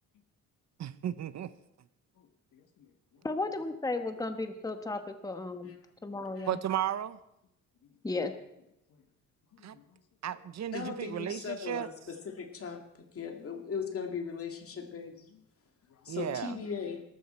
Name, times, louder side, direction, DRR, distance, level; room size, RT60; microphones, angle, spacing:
voice 1, 0.8-1.5 6.5-7.2 9.6-9.8 10.2-11.9 16.1-16.6, right 11 dB, 60° right, 0.8 m, -34 dB
voice 2, 2.2-3.3 6.1-6.3 7.8-8.0 8.9-9.0 9.5-10.0 14.9-15.0 15.3-15.4 15.9-16.1, left 8 dB, 80° left, 1.6 m, -63 dB
voice 3, 3.2-5.7 6.0-6.6 8.0-8.3, left 3 dB, 10° left, 1.2 m, -34 dB
voice 4, 10.7-12.8 13.1-15.1 16.0-17.0, left 6 dB, 50° left, 2.3 m, -38 dB
18.5 x 14.0 x 4.4 m
cardioid pair, 140°, 30 cm